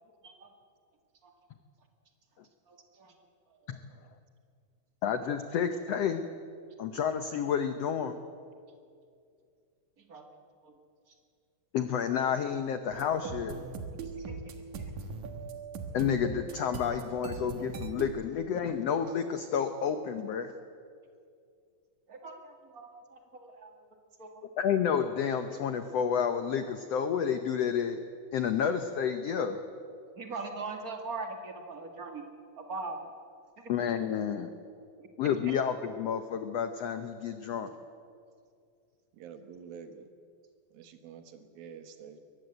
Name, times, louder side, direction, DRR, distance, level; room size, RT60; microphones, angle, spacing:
voice 1, 2.7-3.1 10.0-10.2 10.6-10.7 11.1-11.2 14.0-14.3 14.8-14.9 22.1-23.8 24.2-24.5 30.1-32.2 32.5-33.0 35.0-35.1 35.4-35.6, right 3 dB, 30° right, 4 dB, 1.8 m, -41 dB
voice 2, 5.0-6.2 6.8-8.2 11.7-13.6 15.9-20.5 24.6-28.0 28.3-29.6 33.7-34.5 35.2-37.7, left 7 dB, 80° left, 8 dB, 1.4 m, -30 dB
sound 1, 12.9-18.2, right 4 dB, 60° right, 2.7 m, -40 dB
voice 3, 39.1-40.1 40.7-42.2, right 7 dB, 85° right, 8 dB, 3.2 m, -47 dB
23.0 x 18.5 x 8.1 m, 2.3 s
omnidirectional pair, 4.1 m